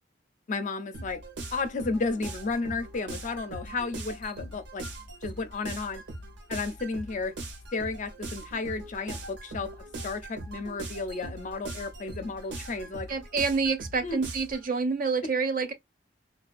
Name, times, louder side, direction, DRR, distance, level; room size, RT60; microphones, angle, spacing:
voice 1, 0.5-1.2 1.5-4.9 5.2-6.0 6.5-7.4 7.7-9.8 10.0-13.1 14.0-14.2, left 3 dB, 45° left, 0.4 m, -33 dB
sound 1, 0.9-14.6, right 2 dB, 85° right, 0.7 m, -41 dB
voice 2, 13.1-15.7, right 4 dB, 50° right, 0.5 m, -27 dB
2.3 x 2.2 x 2.4 m
head